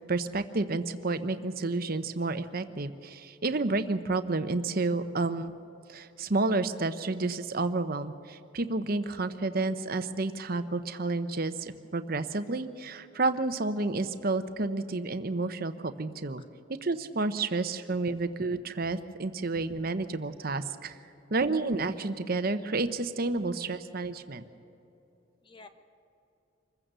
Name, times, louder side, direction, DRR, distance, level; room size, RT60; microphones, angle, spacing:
voice 1, 0.1-5.5 5.9-16.4 16.8-21.0 21.3-24.4, right 3 dB, 50° right, 10 dB, 0.9 m, -30 dB
voice 2, 16.4-16.5 25.4-25.7, left 3 dB, 25° left, 8 dB, 1.1 m, -55 dB
26.0 x 15.0 x 6.8 m, 2.9 s
head